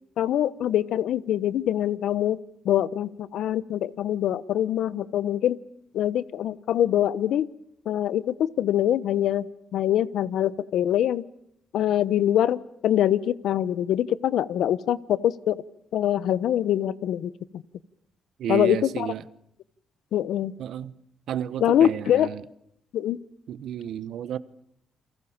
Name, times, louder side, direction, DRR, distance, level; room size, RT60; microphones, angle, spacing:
voice 1, 0.2-2.4 2.6-5.6 5.9-7.5 7.9-9.4 9.7-11.2 11.7-15.6 15.9-17.3 18.5-19.1 20.1-20.5 21.6-22.3 22.9-23.2, left 11 dB, 75° left, 18 dB, 0.9 m, -24 dB
voice 2, 18.4-19.2 20.6-20.9 21.3-22.4 23.5-24.4, right 10 dB, 75° right, 16 dB, 1.1 m, -31 dB
29.5 x 23.0 x 7.3 m, 0.75 s
cardioid pair, 90°, 0 cm